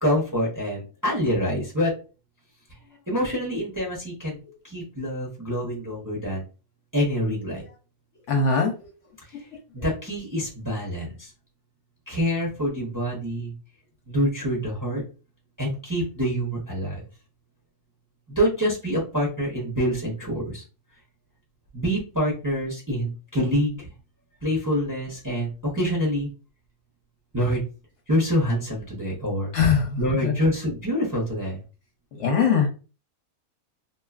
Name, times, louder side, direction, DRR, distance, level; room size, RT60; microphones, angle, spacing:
voice 1, 0.0-1.9 3.1-6.4 6.9-7.6 9.3-9.4 9.7-11.3 12.1-13.5 14.1-15.0 15.6-17.0 18.3-20.6 21.7-23.9 24.4-26.3 27.3-27.6 28.1-29.5 30.0-31.6, equal, 20° right, -3 dB, 0.5 m, -26 dB
voice 2, 8.3-8.9 9.3-9.4 29.5-30.3 32.1-32.7, left 5 dB, 65° left, 2 dB, 0.8 m, -22 dB
2.8 x 2.3 x 2.3 m, 0.34 s
omnidirectional pair, 1.6 m